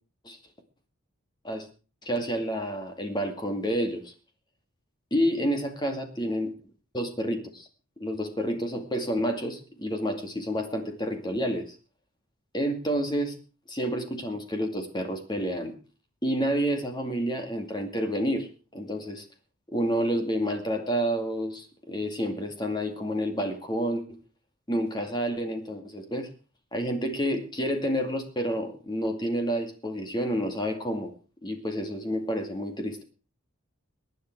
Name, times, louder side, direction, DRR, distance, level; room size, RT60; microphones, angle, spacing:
voice 1, 2.0-4.1 5.1-6.5 6.9-7.7 8.0-11.8 12.5-13.4 13.7-15.7 16.2-19.2 19.7-24.2 24.7-26.3 26.7-31.1 31.4-33.0, equal, 20° left, 5 dB, 2.3 m, -29 dB
23.0 x 9.4 x 4.7 m, 0.36 s
head